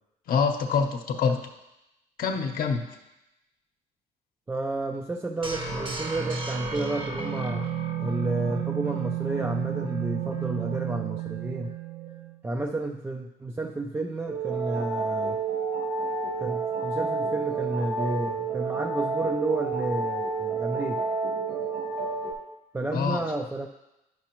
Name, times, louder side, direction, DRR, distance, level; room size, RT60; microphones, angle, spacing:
voice 1, 0.3-1.4 2.2-2.9 22.9-23.2, left 5 dB, 60° left, 4 dB, 0.8 m, -25 dB
voice 2, 4.5-7.6 8.0-11.7 12.4-15.4 16.4-21.1 22.7-23.7, right 2 dB, 15° right, 2 dB, 0.4 m, -31 dB
sound 1, 5.4-12.4, right 7 dB, 30° right, 0.9 m, -32 dB
sound 2, 14.3-22.3, right 4 dB, 70° right, 2.7 m, -29 dB
9.4 x 6.0 x 3.0 m, 0.95 s
cardioid pair, 110°, 17 cm